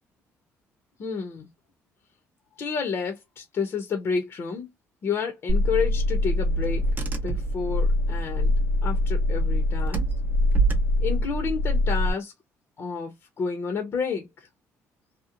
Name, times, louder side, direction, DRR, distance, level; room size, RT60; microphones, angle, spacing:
voice 1, 1.0-1.5 2.6-4.7 5.0-6.8 7.2-8.5 8.8-10.1 11.0-12.3 12.8-14.5, left 5 dB, 45° left, 0.7 m, -30 dB
Car / Engine, 5.5-12.1, left 1 dB, 30° right, 0.6 m, -24 dB
2.8 x 2.0 x 2.4 m
cardioid pair, 115°, 6 cm